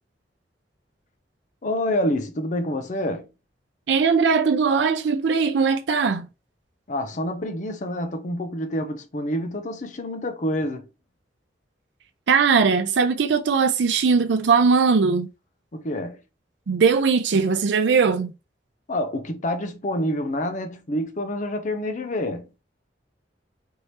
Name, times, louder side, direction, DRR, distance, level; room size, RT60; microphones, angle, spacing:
voice 1, 1.6-3.3 6.9-10.9 15.7-16.2 18.9-22.5, left 1 dB, 45° left, 0.6 m, -27 dB
voice 2, 3.9-6.3 12.3-15.3 16.7-18.3, right 5 dB, 80° right, 0.5 m, -20 dB
4.5 x 2.8 x 3.2 m
head